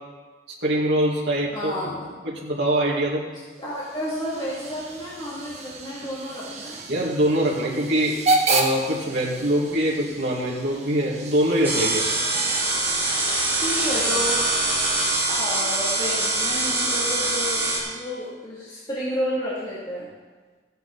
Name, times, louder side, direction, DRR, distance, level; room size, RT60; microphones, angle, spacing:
voice 1, 0.6-1.7 2.2-3.2 6.9-8.2 8.5-12.1, right 1 dB, 65° right, -5 dB, 2.2 m, -23 dB
voice 2, 1.5-2.0 3.6-6.8 13.5-14.4 15.3-20.1, equal, 25° left, -9 dB, 2.8 m, -31 dB
Hiss / Train / Alarm, 3.5-13.2, right 2 dB, 40° right, 1.3 m, -31 dB
sound 1, 11.6-17.8, right 2 dB, 15° right, 4.0 m, -23 dB
15.5 x 9.3 x 4.1 m, 1.4 s
head